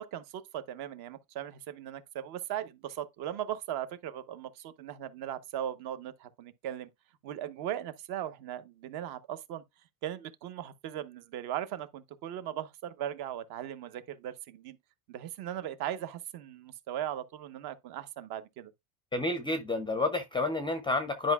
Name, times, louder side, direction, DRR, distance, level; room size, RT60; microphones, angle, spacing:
voice 1, 0.0-6.9 7.2-9.6 10.0-14.8 15.1-18.7, right 11 dB, 50° right, 1.0 m, -38 dB
voice 2, 19.1-21.3, left 2 dB, 10° left, 0.5 m, -30 dB
10.5 x 5.1 x 2.3 m
cardioid pair, 150°, 48 cm